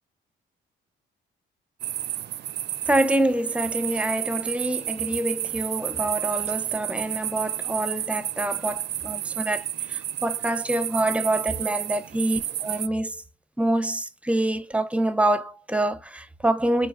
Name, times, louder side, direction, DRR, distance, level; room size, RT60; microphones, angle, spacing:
sound 1, 1.8-12.9, right 12 dB, 55° right, 0.5 m, -31 dB
voice 1, 2.9-13.2 13.6-16.9, right 1 dB, 5° right, 0.8 m, -26 dB
4.6 x 3.8 x 2.5 m
cardioid pair, 90°, 20 cm